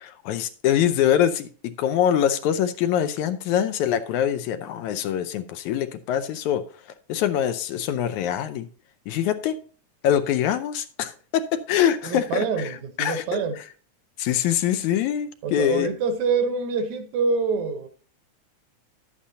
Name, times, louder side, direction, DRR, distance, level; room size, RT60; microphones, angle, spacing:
voice 1, 0.0-1.5 1.8-6.6 7.1-8.7 9.1-9.6 10.0-12.7 13.0-13.4 14.2-15.9, left 10 dB, 80° left, 2.1 m, -24 dB
voice 2, 12.0-13.6 15.4-17.9, right 5 dB, 75° right, 2.3 m, -26 dB
11.5 x 8.7 x 2.7 m
omnidirectional pair, 3.4 m